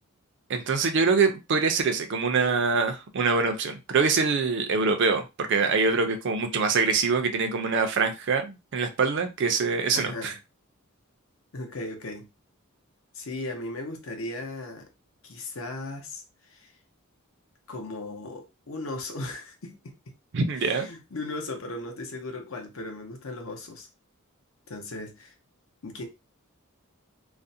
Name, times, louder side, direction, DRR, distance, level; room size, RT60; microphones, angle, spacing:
voice 1, 0.5-10.3 20.3-20.9, right 4 dB, 55° right, 0.4 m, -24 dB
voice 2, 9.9-10.4 11.5-12.3 13.1-14.9 15.2-16.7 17.7-20.1 20.6-23.9 24.7-25.3 25.8-26.1, left 2 dB, 65° left, 0.7 m, -37 dB
2.4 x 2.1 x 2.6 m
head